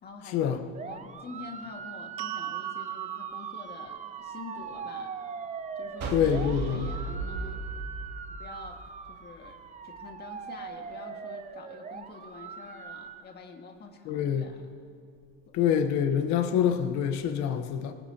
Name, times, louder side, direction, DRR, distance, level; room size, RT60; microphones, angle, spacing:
voice 1, 0.0-5.1 5.8-7.6 8.3-8.8 9.1-9.6 9.8-14.7 15.5-15.6, left 4 dB, 35° left, 1.9 m, -46 dB
sound 1, 0.7-13.2, right 6 dB, 25° right, 0.9 m, -41 dB
sound 2, 2.2-8.4, right 13 dB, 75° right, 0.7 m, -42 dB
sound 3, 6.0-9.2, right 3 dB, 55° right, 2.7 m, -35 dB
voice 2, 6.1-6.9 14.0-14.5 15.5-17.9, left 8 dB, 65° left, 1.2 m, -26 dB
26.5 x 18.5 x 2.9 m
supercardioid pair, 110°, 30 cm